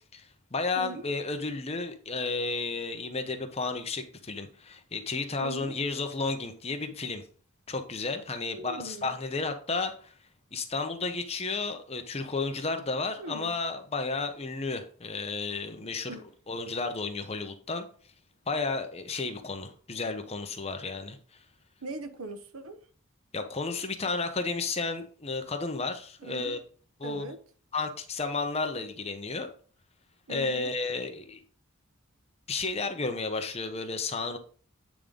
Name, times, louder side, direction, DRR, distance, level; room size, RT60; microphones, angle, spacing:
voice 1, 0.1-7.2 7.7-10.1 10.5-16.1 16.5-17.8 18.5-21.2 23.3-26.6 27.0-27.4 27.7-29.5 30.3-31.4 32.5-34.4, left 3 dB, 30° left, 0.9 m, -32 dB
voice 2, 0.7-1.1 5.4-5.8 8.5-9.2 13.2-13.5 16.1-16.3 21.8-22.8 26.2-26.6 27.0-27.4 30.3-30.7, right 2 dB, 85° right, 1.0 m, -40 dB
8.8 x 3.8 x 5.2 m
head